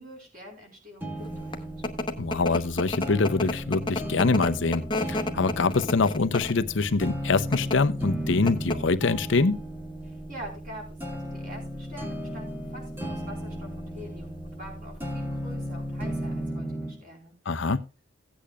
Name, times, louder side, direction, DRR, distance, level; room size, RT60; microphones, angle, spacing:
voice 1, 0.0-1.5 10.0-17.4, equal, 45° right, 4.7 m, -45 dB
sound 1, 1.0-17.0, equal, 10° right, 1.6 m, -35 dB
sound 2, 1.2-16.4, left 2 dB, 25° left, 0.9 m, -34 dB
voice 2, 2.2-9.6 17.5-17.8, left 3 dB, 60° left, 0.7 m, -24 dB
16.5 x 8.5 x 2.4 m
head